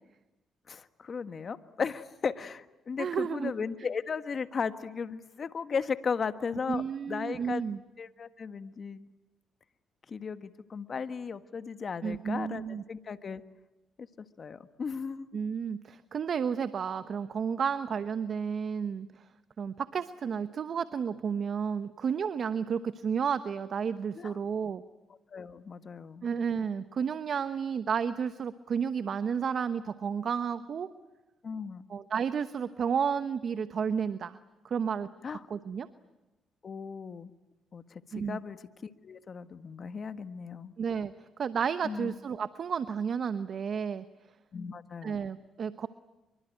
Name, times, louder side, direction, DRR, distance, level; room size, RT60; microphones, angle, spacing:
voice 1, 0.7-7.6 8.0-9.0 10.1-13.4 14.2-15.3 24.2-24.3 25.3-26.3 31.4-31.9 35.2-35.4 36.6-37.3 37.7-40.7 41.8-42.1 44.5-45.2, left 5 dB, 45° left, 11 dB, 1.5 m, -36 dB
voice 2, 3.0-3.5 6.7-7.8 12.0-12.8 15.3-19.3 19.6-24.8 26.2-30.9 31.9-34.4 34.6-35.1 35.5-35.9 38.1-38.4 40.8-41.1 41.4-44.0 45.0-45.9, right 7 dB, 55° right, 12 dB, 1.0 m, -32 dB
25.5 x 24.0 x 9.2 m, 1.0 s
cardioid pair, 90°, 0 cm